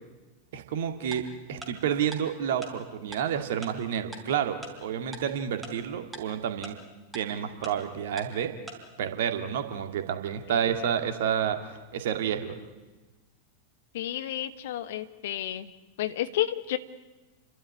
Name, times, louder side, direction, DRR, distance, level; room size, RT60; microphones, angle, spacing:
voice 1, 0.5-6.8 7.1-8.5 9.0-12.6, right 8 dB, 55° right, 7 dB, 2.1 m, -30 dB
Tick-tock, 1.1-1.2 1.6-1.7 2.1-2.2 2.6-2.7 3.1-3.2 3.6-3.7 4.1-4.2 4.6-4.7 5.1-5.2 5.6-5.7 6.1-6.2 6.6-6.7 7.1-7.2 7.6-7.7 8.2-8.3 8.7-8.8, right 2 dB, 5° right, 4.3 m, -40 dB
voice 2, 13.9-15.7 16.0-16.8, left 12 dB, 55° left, 13 dB, 1.1 m, -31 dB
30.0 x 12.5 x 9.6 m, 1.2 s
figure-of-eight pair, 90°, 0 cm